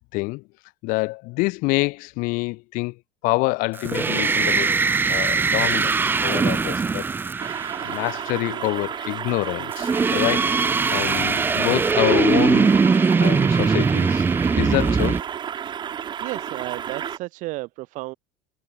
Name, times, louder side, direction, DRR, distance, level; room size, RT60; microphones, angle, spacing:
voice 1, 0.1-0.4 0.8-2.9 3.2-4.7 5.1-7.0 7.8-12.7 13.2-14.2 14.6-15.2, left 24 dB, 55° left, 6.7 m, -26 dB
sound 1, 3.8-8.2 9.7-15.2, right 4 dB, 10° right, 0.7 m, -21 dB
sound 2, 7.4-17.2, right 9 dB, 30° right, 6.1 m, -32 dB
voice 2, 16.0-18.1, right 20 dB, 50° right, 6.7 m, -33 dB
cardioid pair, 155°, 16 cm